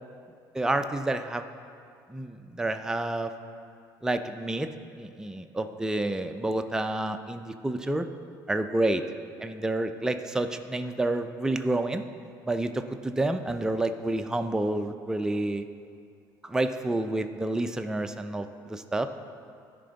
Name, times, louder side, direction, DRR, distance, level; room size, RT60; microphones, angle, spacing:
voice 1, 0.5-1.4 2.1-3.3 4.0-4.7 5.0-8.1 8.5-9.0 9.4-12.1 12.4-15.7 16.4-19.1, right 2 dB, 5° right, 7 dB, 0.4 m, -29 dB
13.0 x 5.1 x 3.9 m, 2.3 s
supercardioid pair, 90°, 8 cm